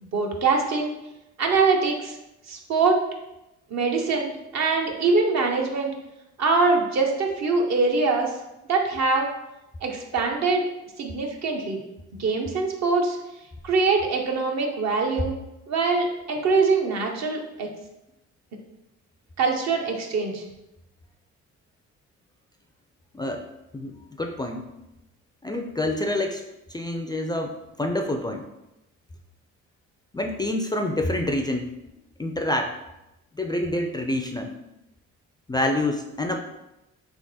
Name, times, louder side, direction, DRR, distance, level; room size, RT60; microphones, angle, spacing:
voice 1, 0.0-0.9 1.4-2.2 2.5-3.0 3.7-5.9 6.4-8.3 8.7-9.3 9.8-10.7 11.0-11.8 12.2-13.2 13.6-15.3 15.7-17.7 19.4-20.4, right 4 dB, 60° right, 2 dB, 0.9 m, -23 dB
voice 2, 23.1-23.5 23.7-24.6 25.4-26.4 26.7-28.4 30.1-31.7 32.2-32.8 33.4-34.5 35.5-36.4, left 1 dB, 15° left, 4 dB, 0.3 m, -27 dB
3.6 x 2.9 x 4.0 m, 0.92 s
cardioid pair, 90°, 30 cm